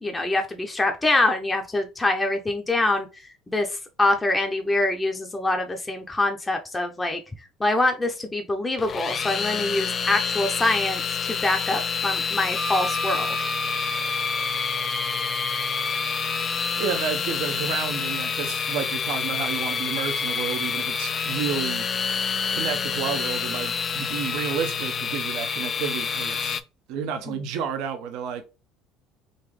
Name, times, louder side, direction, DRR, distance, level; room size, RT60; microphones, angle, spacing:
voice 1, 0.0-3.1 3.5-7.2 7.6-13.5 27.3-27.4, left 2 dB, 15° left, 0.7 m, -25 dB
sound 1, 8.8-26.6, left 6 dB, 40° left, 0.4 m, -28 dB
Wind instrument woodwind instrument, 12.5-17.0, right 2 dB, 25° right, 0.6 m, -33 dB
voice 2, 16.8-21.9 22.5-26.6 26.9-28.4, right 7 dB, 75° right, 0.7 m, -30 dB
3.9 x 2.6 x 3.2 m
supercardioid pair, 90°, 0 cm